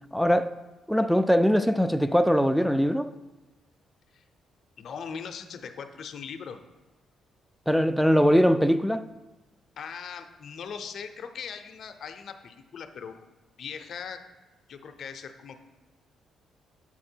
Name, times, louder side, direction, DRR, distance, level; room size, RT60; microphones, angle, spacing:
voice 1, 0.1-0.5 0.9-3.1 7.7-9.1, equal, ahead, 0.3 m, -21 dB
voice 2, 4.8-6.6 9.8-13.3 13.6-14.2 14.7-15.6, left 6 dB, 60° left, 0.6 m, -40 dB
7.3 x 4.5 x 4.5 m
cardioid pair, 90°, 0 cm